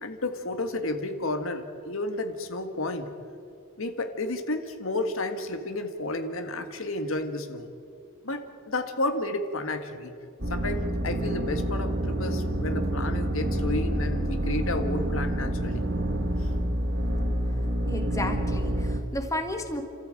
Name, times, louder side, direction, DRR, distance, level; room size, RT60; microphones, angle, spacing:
voice 1, 0.0-3.1 3.8-7.7 8.2-10.1 10.5-15.8 16.4-16.5, left 2 dB, 70° left, 7 dB, 1.7 m, -31 dB
sound 1, 10.4-19.0, right 1 dB, 55° right, 2.1 m, -28 dB
voice 2, 17.8-19.8, left 1 dB, 15° left, 5 dB, 1.8 m, -33 dB
29.5 x 14.0 x 8.9 m, 2.4 s
head